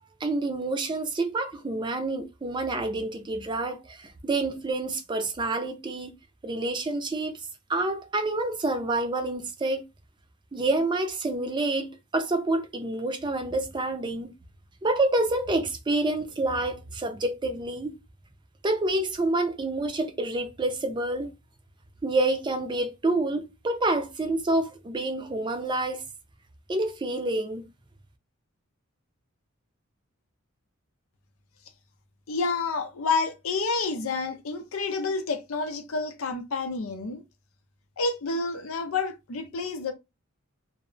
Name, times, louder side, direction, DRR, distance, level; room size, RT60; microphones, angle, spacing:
voice 1, 0.2-6.1 6.4-7.4 7.7-9.8 10.5-14.3 14.8-18.0 18.6-21.3 22.0-26.0 26.7-27.6, right 2 dB, 25° right, 0.4 m, -28 dB
voice 2, 32.3-37.2 38.0-39.9, left 4 dB, 90° left, 0.6 m, -29 dB
2.0 x 2.0 x 3.7 m
head